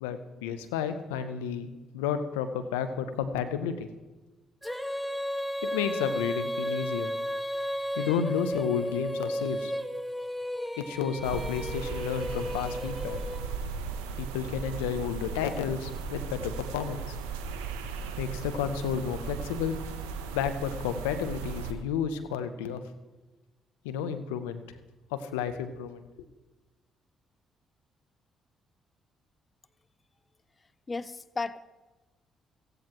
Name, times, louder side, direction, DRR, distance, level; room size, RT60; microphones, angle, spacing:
voice 1, 0.0-3.9 5.6-7.1 8.0-9.7 10.8-13.2 14.2-17.2 18.2-19.8 20.3-22.8 23.8-24.6 25.1-26.0, left 8 dB, 85° left, 9 dB, 0.7 m, -31 dB
Female singing, 4.6-13.8, equal, 5° left, 1.1 m, -34 dB
sound 1, 11.2-21.7, right 5 dB, 80° right, 0.8 m, -37 dB
voice 2, 30.9-31.6, left 3 dB, 30° left, 15 dB, 0.5 m, -34 dB
16.0 x 16.0 x 3.0 m, 1.2 s
hypercardioid pair, 45°, 0 cm